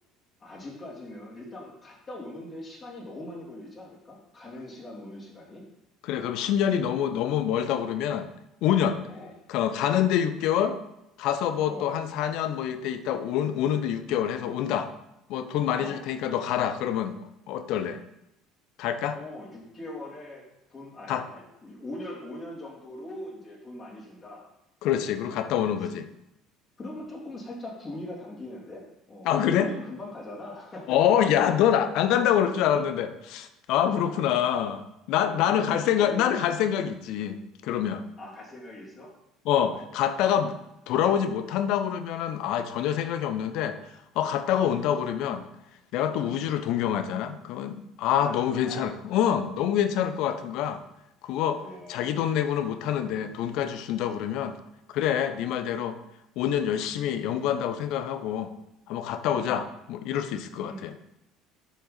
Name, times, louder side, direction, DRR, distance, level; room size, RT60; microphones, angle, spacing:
voice 1, 0.4-5.6 9.1-9.3 11.7-12.0 15.7-16.1 19.1-20.4 20.7-24.5 25.3-25.5 25.8-25.9 26.8-31.0 34.1-34.3 35.2-36.3 38.2-39.1 39.7-40.4 44.6-44.8 46.2-46.5 48.2-48.9 51.6-52.2 55.4-55.6 59.3-59.6 60.6-60.9, left 1 dB, 35° left, -5 dB, 3.1 m, -41 dB
voice 2, 6.0-8.3 8.6-9.0 9.5-10.8 11.2-14.9 15.3-17.1 17.5-18.0 18.8-19.2 21.1-21.2 24.8-26.1 29.2-29.7 30.9-38.0 39.5-40.5 40.9-43.8 44.1-45.5 45.9-50.8 51.2-51.6 51.9-54.5 54.9-56.0 56.4-58.5 58.9-60.9, left 9 dB, 55° left, 10 dB, 0.7 m, -26 dB
9.2 x 7.0 x 4.2 m, 0.90 s
figure-of-eight pair, 60°, 0 cm